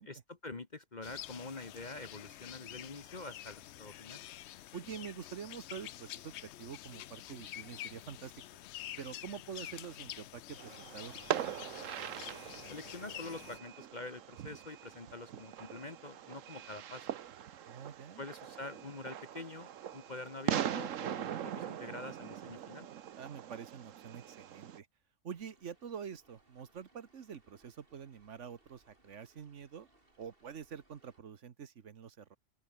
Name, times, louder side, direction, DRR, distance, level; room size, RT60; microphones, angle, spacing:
voice 1, 0.0-4.2 12.7-17.1 18.2-22.9, left 3 dB, 35° left, 1.5 m, -46 dB
sound 1, 1.0-13.6, left 13 dB, 65° left, 0.8 m, -48 dB
voice 2, 4.7-8.3 9.0-11.5 17.7-18.2 23.1-24.9 25.2-29.9 30.2-32.4, right 7 dB, 70° right, 1.5 m, -46 dB
Fireworks, 10.6-24.8, right 10 dB, 85° right, 1.3 m, -41 dB
sound 2, 25.3-31.2, right 2 dB, 45° right, 4.8 m, -69 dB
open air
omnidirectional pair, 1.3 m